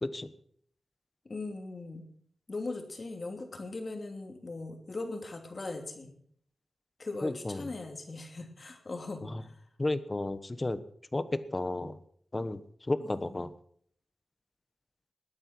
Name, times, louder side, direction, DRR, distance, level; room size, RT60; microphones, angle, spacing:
voice 1, 0.0-0.3 7.2-7.7 9.2-9.4 9.8-10.8 11.1-12.0 12.3-12.6 12.9-13.5, left 2 dB, 25° left, 13 dB, 1.0 m, -32 dB
voice 2, 1.2-2.1 2.5-6.1 7.0-9.6 13.0-13.3, left 3 dB, 40° left, 4 dB, 2.8 m, -39 dB
20.5 x 8.8 x 6.1 m, 0.63 s
wide cardioid pair, 140°, 0 cm